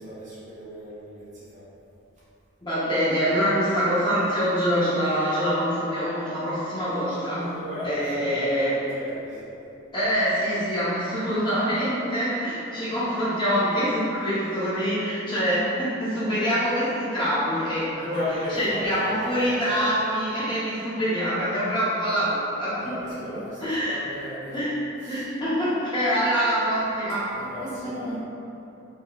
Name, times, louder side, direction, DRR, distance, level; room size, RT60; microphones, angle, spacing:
voice 1, 0.0-1.7 7.5-9.6 18.0-19.8 22.8-24.7 25.0-25.3 27.2-28.2, left 1 dB, 40° right, -12 dB, 1.2 m, -36 dB
voice 2, 2.6-7.5 7.8-8.8 9.9-18.2 18.6-24.0 24.5-24.7 25.1-27.3 27.8-28.1, equal, 25° left, -11 dB, 0.8 m, -25 dB
4.7 x 2.2 x 2.3 m, 2.9 s
head